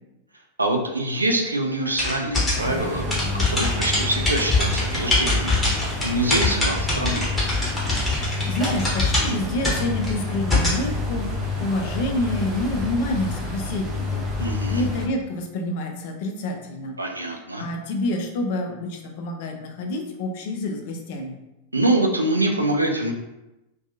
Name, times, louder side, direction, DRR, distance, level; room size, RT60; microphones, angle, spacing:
voice 1, 0.6-3.2 3.5-5.6 6.0-7.2 14.4-14.9 17.0-17.7 21.7-23.1, right 1 dB, 80° right, 3 dB, 0.3 m, -24 dB
sound 1, 2.0-10.8, left 2 dB, 10° left, 0.9 m, -24 dB
sound 2, 2.5-15.1, left 2 dB, 25° right, 0.6 m, -29 dB
voice 2, 8.1-14.4 14.7-16.9 17.6-21.4, left 1 dB, 50° left, 3 dB, 0.4 m, -28 dB
2.6 x 2.3 x 2.4 m, 0.96 s
figure-of-eight pair, 90°, 0 cm